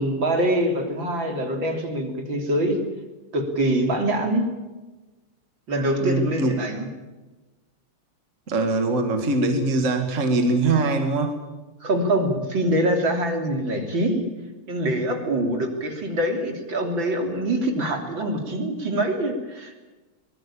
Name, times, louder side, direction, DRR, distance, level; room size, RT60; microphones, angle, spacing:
voice 1, 0.0-2.8 3.3-4.5 5.7-6.9 11.8-14.3 14.7-19.8, right 1 dB, 60° right, 4 dB, 4.0 m, -24 dB
voice 2, 6.0-6.6 8.5-11.3, right 2 dB, 35° right, 5 dB, 2.3 m, -22 dB
24.0 x 20.0 x 8.7 m, 1.2 s
omnidirectional pair, 2.4 m